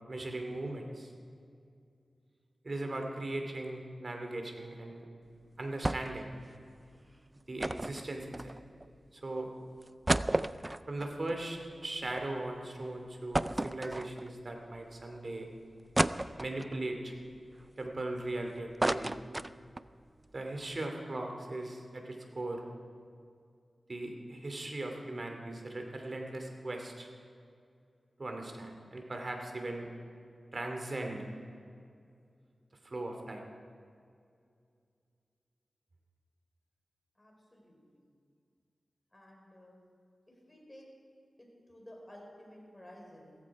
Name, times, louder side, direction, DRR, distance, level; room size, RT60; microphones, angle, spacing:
voice 1, 0.1-1.1 2.6-5.1 5.6-6.3 7.5-8.5 9.1-9.5 10.9-15.5 16.4-17.1 17.8-19.1 20.3-22.6 23.9-27.1 28.2-29.9 30.5-31.2 32.8-33.4, right 2 dB, 50° right, 3 dB, 2.5 m, -38 dB
sound 1, 5.8-6.3 6.5-6.6 7.6-8.9 9.4-9.5 9.8-12.3 12.6-12.7 13.3-14.5 15.0-15.1 16.0-16.8 17.3-18.3 18.6-19.9 20.3-20.4 20.6-20.8, right 1 dB, 20° right, 0.4 m, -33 dB
voice 2, 37.2-37.8 39.1-39.8 40.4-40.8 41.7-43.3, equal, 25° left, -1 dB, 4.7 m, -53 dB
16.0 x 14.5 x 4.8 m, 2.3 s
wide cardioid pair, 65°, 0 cm